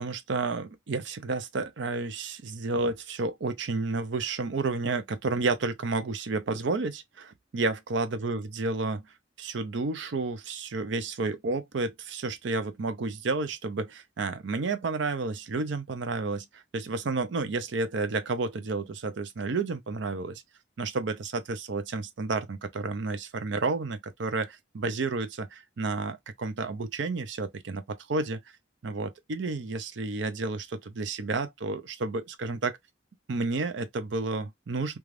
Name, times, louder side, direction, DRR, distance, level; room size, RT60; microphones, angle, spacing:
voice 1, 0.0-20.4 20.8-28.4 28.8-32.8 33.3-35.0, right 3 dB, 70° right, 0.5 m, -31 dB
2.5 x 2.3 x 3.1 m
head